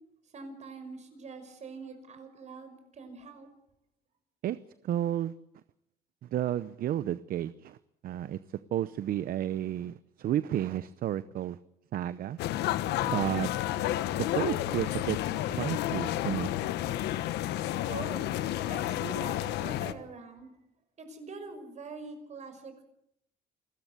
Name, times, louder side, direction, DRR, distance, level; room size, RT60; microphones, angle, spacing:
voice 1, 0.3-3.5 17.9-18.2 18.7-20.5 21.0-22.8, right 4 dB, 45° right, 8 dB, 5.7 m, -44 dB
voice 2, 4.8-5.3 6.3-7.8 8.0-8.4 8.7-11.6 11.9-12.4 13.0-13.5 14.3-15.2 15.5-16.5, right 11 dB, 60° right, 15 dB, 0.8 m, -31 dB
sound 1, 12.4-19.9, left 13 dB, 85° left, 1.3 m, -31 dB
29.0 x 14.0 x 8.2 m, 0.75 s
cardioid pair, 110°, 17 cm